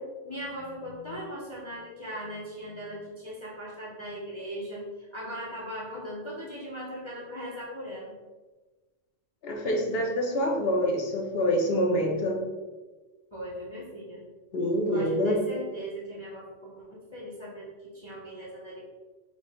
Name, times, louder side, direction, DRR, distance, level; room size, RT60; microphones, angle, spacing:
voice 1, 0.2-8.1 13.3-14.2 14.9-18.8, equal, 35° left, -5 dB, 0.4 m, -39 dB
voice 2, 9.4-12.4 14.5-15.4, equal, 60° left, 1 dB, 0.8 m, -26 dB
4.7 x 2.1 x 3.9 m, 1.3 s
omnidirectional pair, 1.3 m